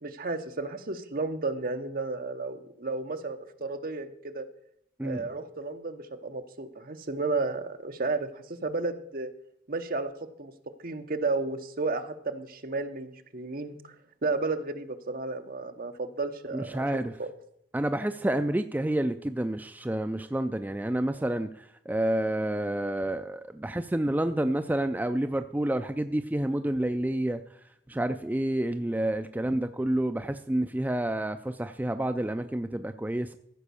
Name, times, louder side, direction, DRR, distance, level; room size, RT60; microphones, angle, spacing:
voice 1, 0.0-4.5 5.0-9.3 9.7-10.1 10.4-10.5 10.8-13.8 14.2-16.9 17.2-17.3, right 3 dB, 50° right, 8 dB, 0.9 m, -32 dB
voice 2, 16.5-17.1 17.7-21.5 21.9-27.4 27.9-33.4, right 1 dB, 10° right, 8 dB, 0.3 m, -29 dB
14.5 x 5.2 x 6.9 m, 0.74 s
head